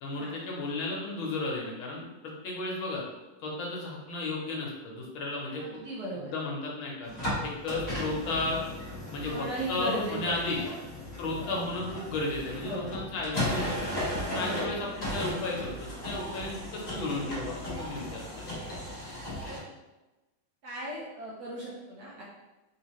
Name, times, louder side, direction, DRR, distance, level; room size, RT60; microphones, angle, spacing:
voice 1, 0.0-3.0 3.4-5.8 6.1-7.1 7.4-8.6 9.1-10.6 11.2-13.9 14.3-18.4, left 2 dB, 80° left, -2 dB, 1.6 m, -34 dB
voice 2, 5.6-6.3 9.3-10.7 11.4-11.6 12.6-12.9 14.3-14.7 18.7-18.8 19.4-19.6 20.6-22.2, right 1 dB, 65° right, -4 dB, 1.0 m, -37 dB
sound 1, 7.0-19.6, left 1 dB, 25° left, 1.2 m, -36 dB
3.8 x 2.8 x 3.0 m, 1.1 s
omnidirectional pair, 2.2 m